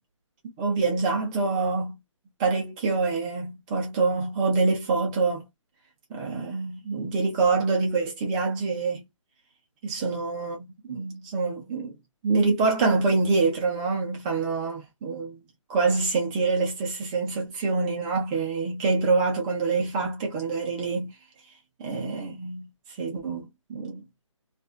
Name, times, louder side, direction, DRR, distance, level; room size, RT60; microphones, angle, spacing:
voice 1, 0.4-2.0 2.4-5.5 6.1-9.0 9.8-11.9 12.2-21.1 21.8-22.7 23.0-24.0, right 4 dB, 15° right, 0.8 m, -26 dB
2.6 x 2.5 x 2.4 m
figure-of-eight pair, 160°, 17 cm